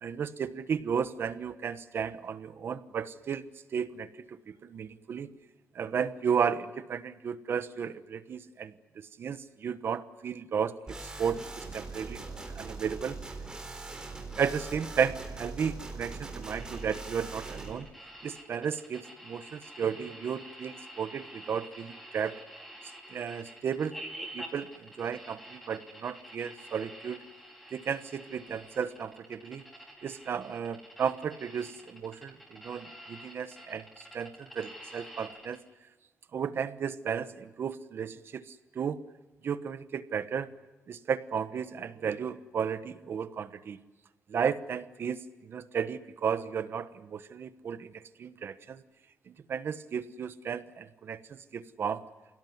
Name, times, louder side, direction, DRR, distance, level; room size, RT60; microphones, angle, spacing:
voice 1, 0.0-3.4 3.7-5.3 5.7-13.2 14.4-17.9 18.2-22.3 23.1-24.0 24.3-27.2 27.7-29.6 30.0-35.6 36.3-39.0 39.4-40.5 40.9-43.8 44.3-47.9 48.2-48.8 49.3-52.1, right 7 dB, 50° right, 13 dB, 1.2 m, -34 dB
sound 1, 10.9-17.7, right 3 dB, 15° right, 3.7 m, -41 dB
sound 2, 16.4-35.6, equal, ahead, 5.0 m, -48 dB
28.5 x 17.0 x 9.5 m, 1.2 s
wide cardioid pair, 165°, 5 cm